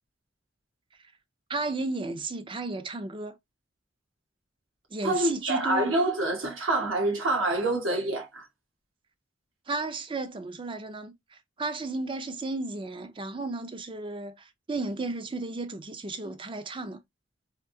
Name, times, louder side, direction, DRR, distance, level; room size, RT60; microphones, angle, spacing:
voice 1, 1.5-3.4 4.9-5.9 9.7-17.0, right 2 dB, 25° right, 0.5 m, -34 dB
voice 2, 5.0-8.5, right 2 dB, 80° right, 1.4 m, -26 dB
3.5 x 2.7 x 2.6 m
head